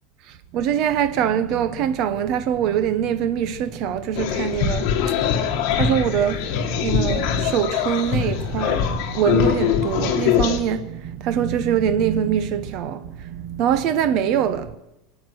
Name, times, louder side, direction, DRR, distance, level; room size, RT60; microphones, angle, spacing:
voice 1, 0.5-5.2 5.4-14.8, right 9 dB, 40° right, 0.9 m, -23 dB
sound 1, 4.2-10.6, left 8 dB, 45° left, 2.0 m, -22 dB
24.5 x 9.3 x 6.3 m
supercardioid pair, 175°, 0 cm